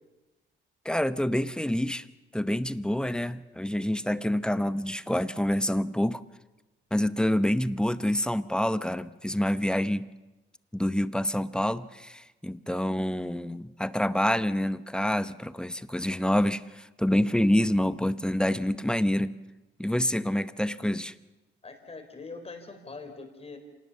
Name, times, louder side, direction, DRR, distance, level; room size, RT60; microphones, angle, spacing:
voice 1, 0.8-2.1 2.3-6.2 6.9-10.1 10.7-19.3 19.8-21.1, left 1 dB, 5° left, 14 dB, 0.8 m, -27 dB
voice 2, 21.6-23.6, left 3 dB, 30° left, 6 dB, 4.4 m, -43 dB
26.0 x 18.5 x 7.2 m, 1.1 s
cardioid pair, 90°, 20 cm